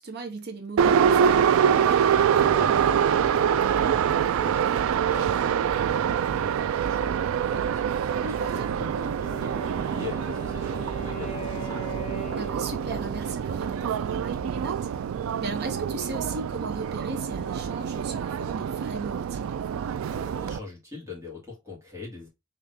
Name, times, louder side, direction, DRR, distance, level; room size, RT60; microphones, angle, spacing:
voice 1, 0.0-1.5 8.2-8.7 12.4-14.9 15.4-19.6, right 3 dB, 50° right, 0.7 m, -36 dB
Subway metro underground, 0.8-20.6, right 8 dB, 85° right, 0.3 m, -25 dB
voice 2, 1.9-12.0 20.1-22.3, left 4 dB, 15° right, 2.0 m, -42 dB
Wind instrument woodwind instrument, 9.2-14.2, right 1 dB, 30° left, 1.0 m, -41 dB
3.7 x 3.3 x 2.7 m
head